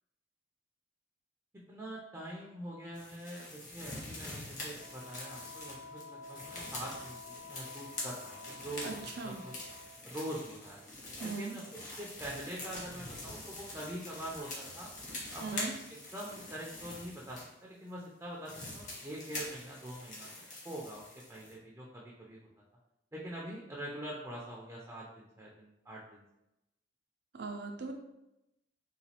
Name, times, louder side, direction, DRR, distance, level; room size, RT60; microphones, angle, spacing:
voice 1, 1.7-9.0 9.2-9.5 10.0-10.8 11.2-14.9 15.3-21.0 21.3-22.5 23.1-26.2, right 1 dB, 15° right, -4 dB, 0.5 m, -44 dB
sound 1, 2.9-17.5 18.0-18.1 18.4-21.5, left 2 dB, 45° left, 1.1 m, -45 dB
Wind instrument woodwind instrument, 4.8-10.0, left 4 dB, 65° left, 0.4 m, -50 dB
voice 2, 8.8-9.4 11.2-11.5 15.4-15.7 27.3-27.9, right 4 dB, 65° right, 3 dB, 0.5 m, -39 dB
3.9 x 2.3 x 2.8 m, 0.89 s
head